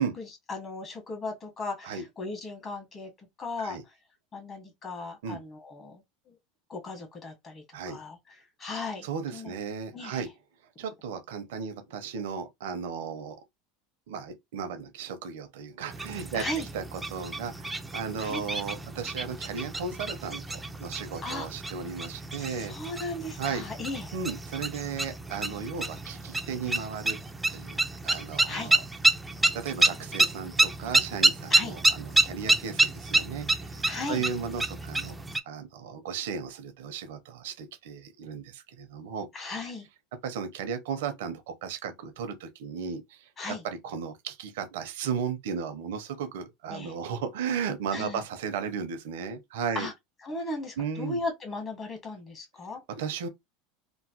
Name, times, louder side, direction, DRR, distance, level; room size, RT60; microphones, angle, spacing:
voice 1, 0.0-3.1 3.4-3.8 4.3-6.3 6.7-9.5 9.9-10.2 16.3-16.7 18.2-18.4 21.2-21.5 22.5-24.1 28.5-28.7 31.5-31.8 33.9-34.2 39.3-39.9 43.4-43.6 46.7-46.9 47.9-48.2 49.7-49.9 50.2-52.8, left 2 dB, 35° left, 1.3 m, -37 dB
voice 2, 9.0-10.3 10.8-13.4 14.1-16.4 16.7-22.7 23.4-23.6 24.1-27.2 27.5-28.8 29.6-33.8 34.1-35.1 35.5-39.3 40.2-49.9 50.8-51.2 52.9-53.3, right 6 dB, 80° right, 0.7 m, -35 dB
sound 1, 15.9-35.4, right 2 dB, 10° right, 0.4 m, -29 dB
3.0 x 2.1 x 2.9 m
supercardioid pair, 115°, 0 cm